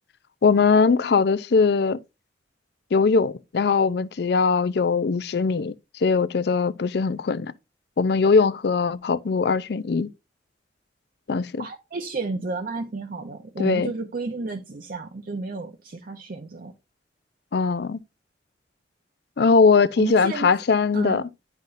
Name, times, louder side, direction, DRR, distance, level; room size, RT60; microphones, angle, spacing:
voice 1, 0.4-2.0 2.9-5.7 6.0-7.5 8.0-10.1 11.3-11.7 13.6-13.9 17.5-18.0 19.4-21.3, left 4 dB, 60° left, 0.4 m, -20 dB
voice 2, 11.6-16.7 20.0-20.5 20.9-21.2, right 3 dB, 50° right, 0.6 m, -32 dB
9.9 x 5.7 x 2.5 m
head